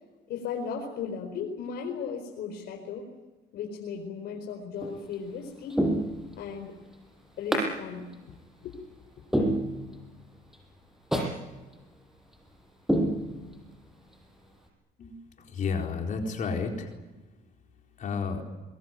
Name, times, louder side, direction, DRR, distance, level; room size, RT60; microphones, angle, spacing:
voice 1, 0.3-3.1 3.5-5.8 6.3-6.7 7.4-8.1 8.6-8.8, left 6 dB, 70° left, 2 dB, 4.7 m, -36 dB
sound 1, 4.8-5.1 5.7-6.6 7.5-7.7 8.1-8.2 8.7-8.8 9.3-10.2 10.5-10.6 11.1-11.4 11.7-11.8 12.3-12.5 12.9-13.8 14.1-14.2, right 1 dB, ahead, 7.7 m, -28 dB
voice 2, 15.0-16.9 18.0-18.4, left 5 dB, 50° left, 2 dB, 4.3 m, -31 dB
23.5 x 22.5 x 9.3 m, 1.2 s
cardioid pair, 110°, 17 cm